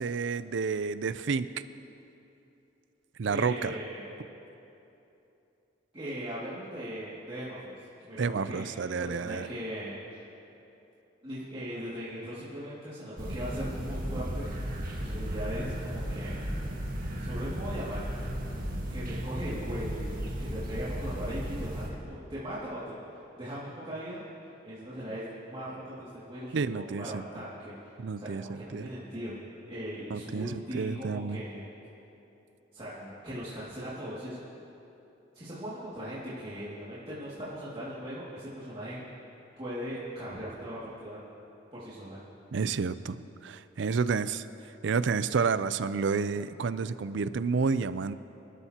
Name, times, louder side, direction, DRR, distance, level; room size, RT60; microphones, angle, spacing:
voice 1, 0.0-1.5 3.2-3.8 8.2-9.5 26.5-27.4 28.0-28.9 30.1-31.4 42.5-44.4 44.8-48.1, right 5 dB, 65° right, 14 dB, 0.5 m, -30 dB
voice 2, 3.3-4.1 5.9-7.8 8.0-10.2 11.2-14.5 14.9-16.4 17.1-18.3 18.9-22.8 23.1-24.2 24.6-27.7 28.2-29.4 29.7-31.7 32.7-34.4 35.3-39.0 39.6-41.2 41.7-42.2, equal, 30° right, -10 dB, 2.3 m, -39 dB
sound 1, 13.2-21.9, equal, 50° right, 1.7 m, -35 dB
25.5 x 12.5 x 2.9 m, 2.9 s
head